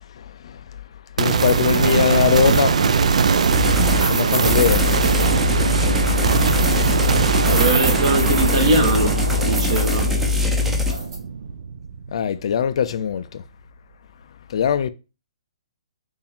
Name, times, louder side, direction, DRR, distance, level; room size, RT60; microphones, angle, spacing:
voice 1, 1.2-2.8 4.1-5.0 5.8-6.1 12.1-13.4 14.5-14.9, left 8 dB, 55° left, 0.3 m, -21 dB
sound 1, 1.2-12.5, right 6 dB, 75° right, 0.4 m, -21 dB
sound 2, 1.4-2.8 3.4-5.6 6.1-7.1 7.3-9.2 9.5-10.1 10.8-11.2, right 2 dB, 35° right, 1.9 m, -29 dB
sound 3, 3.5-4.1 4.4-10.9, left 4 dB, 5° right, 0.5 m, -22 dB
voice 2, 7.2-10.1, right 2 dB, 55° right, 1.3 m, -22 dB
4.5 x 2.5 x 3.5 m
hypercardioid pair, 155°, 4 cm